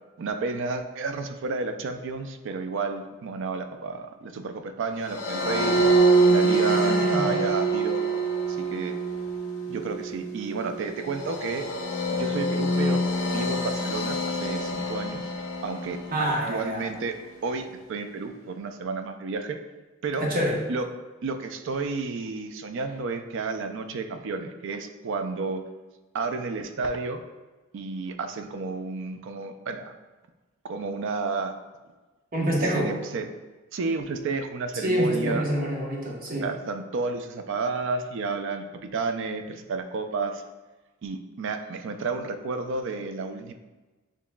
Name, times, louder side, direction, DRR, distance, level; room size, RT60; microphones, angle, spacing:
voice 1, 0.2-5.9 6.3-8.0 8.5-9.0 9.7-11.7 12.1-15.2 15.6-19.6 20.0-20.3 20.7-20.9 21.2-25.6 26.1-27.2 27.7-29.9 30.6-31.5 32.6-33.3 33.7-35.4 36.4-40.4 41.0-43.5, right 4 dB, 65° right, 8 dB, 0.4 m, -31 dB
sound 1, 5.1-16.4, right 2 dB, 80° left, 0.7 m, -25 dB
voice 2, 6.7-7.3 16.1-16.8 20.2-20.6 32.3-32.9 34.7-36.5, equal, 45° right, -2 dB, 0.9 m, -26 dB
6.9 x 3.0 x 2.2 m, 1.2 s
head